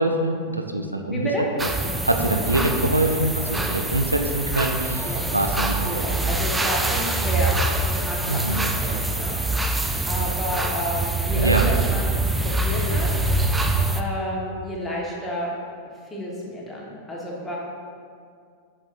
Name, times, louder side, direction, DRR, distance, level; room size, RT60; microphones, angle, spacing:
voice 1, 0.0-1.3 2.1-6.2 8.3-8.7 11.4-11.7, right 1 dB, 85° right, 5 dB, 0.4 m, -24 dB
voice 2, 1.1-1.4 5.0-9.4 9.6-13.1 13.9-15.5 16.0-17.6, equal, 10° left, -4 dB, 1.4 m, -31 dB
sound 1, 1.6-14.0, right 2 dB, 10° right, 0.4 m, -24 dB
7.8 x 5.8 x 2.6 m, 2.2 s
figure-of-eight pair, 90°, 0 cm